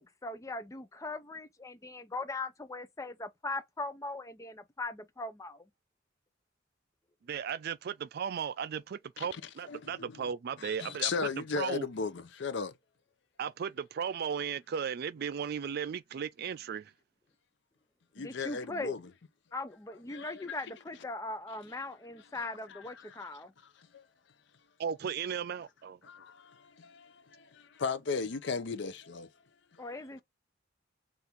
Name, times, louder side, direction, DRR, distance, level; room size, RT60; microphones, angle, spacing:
voice 1, 0.0-5.6 18.2-19.0 19.5-23.5 29.8-30.2, left 2 dB, 15° left, 0.5 m, -40 dB
voice 2, 7.3-11.1 11.5-11.9 13.4-16.9 24.8-26.0, right 7 dB, 55° right, 0.3 m, -36 dB
voice 3, 9.7-10.1 10.6-12.7 18.2-19.0 20.1-20.6 22.7-23.3 23.8-24.0 26.0-29.3, left 5 dB, 65° left, 0.6 m, -36 dB
4.3 x 2.5 x 3.5 m
head